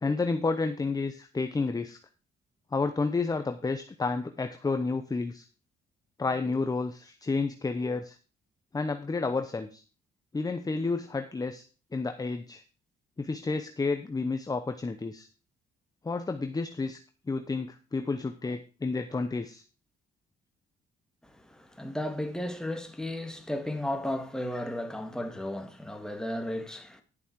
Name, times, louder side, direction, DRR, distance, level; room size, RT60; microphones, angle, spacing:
voice 1, 0.0-2.0 2.7-5.4 6.2-8.2 8.7-9.8 10.3-11.6 11.9-12.6 13.2-15.3 16.0-17.0 17.3-19.6, left 3 dB, 20° left, 0.8 m, -30 dB
voice 2, 21.2-27.0, left 1 dB, 5° left, 1.8 m, -34 dB
11.0 x 7.0 x 4.7 m
cardioid pair, 90°, 20 cm